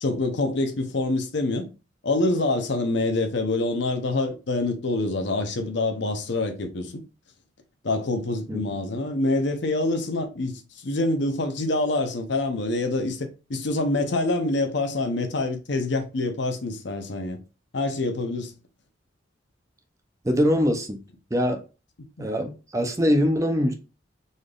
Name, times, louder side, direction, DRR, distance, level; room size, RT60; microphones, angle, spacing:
voice 1, 0.0-1.7 2.0-6.9 7.8-17.4 17.7-18.5, left 2 dB, 65° left, 0.7 m, -26 dB
voice 2, 20.2-21.0 21.3-21.6 22.2-23.7, equal, 15° right, 0.6 m, -23 dB
4.0 x 3.4 x 2.4 m
head